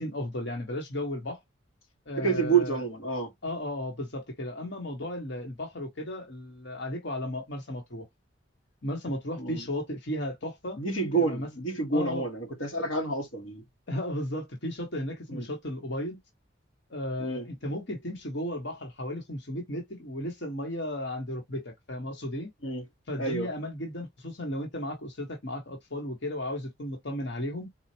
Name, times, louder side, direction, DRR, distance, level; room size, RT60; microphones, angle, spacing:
voice 1, 0.0-1.4 2.1-2.8 3.4-8.1 8.8-10.8 11.1-11.5 11.9-12.3 13.9-16.2 16.9-22.5 23.1-27.7, left 1 dB, 60° left, 1.2 m, -34 dB
voice 2, 2.2-3.3 9.4-9.6 10.8-13.6 15.3-15.4 17.2-17.4 22.6-22.8 23.2-23.5, right 4 dB, 85° left, 1.4 m, -28 dB
4.3 x 2.4 x 2.7 m
head